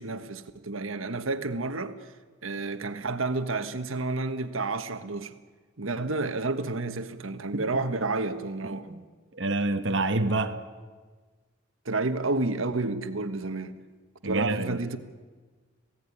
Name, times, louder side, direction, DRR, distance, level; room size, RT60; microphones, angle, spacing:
voice 1, 0.0-1.9 2.4-5.3 5.8-8.9 11.8-13.8 14.2-15.0, right 3 dB, 85° right, 1.4 m, -30 dB
voice 2, 8.6-9.0 9.4-10.6 14.2-14.8, right 2 dB, 65° right, 1.3 m, -27 dB
27.0 x 17.5 x 9.9 m
head